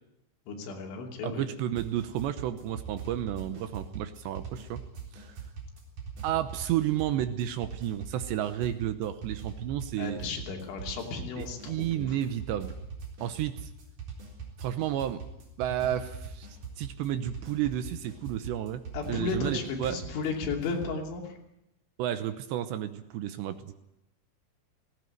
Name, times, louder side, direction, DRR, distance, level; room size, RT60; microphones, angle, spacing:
voice 1, 0.5-1.5 10.0-12.2 18.9-21.4, left 4 dB, 70° left, 2 dB, 5.1 m, -34 dB
voice 2, 1.2-4.8 5.1-5.4 6.2-10.2 11.4-12.7 13.2-13.7 14.6-15.2 15.6-16.5 16.8-20.0 22.0-23.7, right 11 dB, 75° right, 11 dB, 2.9 m, -32 dB
sound 1, 1.8-21.0, right 5 dB, 45° right, 5.2 m, -42 dB
19.0 x 17.5 x 9.3 m, 0.85 s
omnidirectional pair, 5.6 m